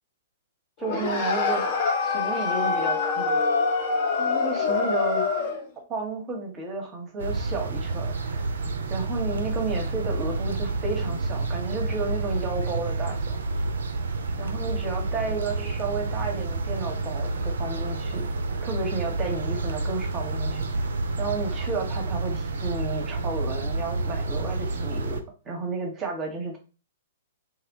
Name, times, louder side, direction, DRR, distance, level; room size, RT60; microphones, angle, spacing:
sound 1, 0.8-5.7, left 4 dB, 40° left, 0.4 m, -25 dB
voice 1, 0.8-1.6 2.0-3.4 4.2-5.3 5.9-8.5 8.9-13.4 14.4-18.3 18.6-20.9 21.2-26.6, right 3 dB, 25° right, 2 dB, 0.7 m, -32 dB
sound 2, 7.2-25.2, right 3 dB, 70° right, 0.3 m, -29 dB
2.7 x 2.1 x 2.6 m, 0.34 s
figure-of-eight pair, 115°, 0 cm